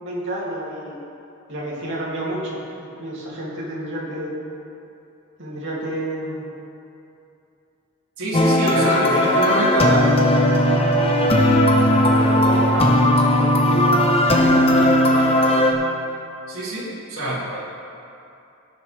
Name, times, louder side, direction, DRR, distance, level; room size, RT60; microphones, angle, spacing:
voice 1, 0.0-1.0 1.5-4.3 5.4-6.4 8.4-11.4 11.7-15.4, right 1 dB, 60° right, -6 dB, 2.7 m, -29 dB
voice 2, 8.2-9.9 16.5-17.6, right 1 dB, 85° right, -8 dB, 2.6 m, -26 dB
sound 1, 8.3-15.7, left 1 dB, 30° left, 0.9 m, -17 dB
17.5 x 6.8 x 3.4 m, 2.7 s
head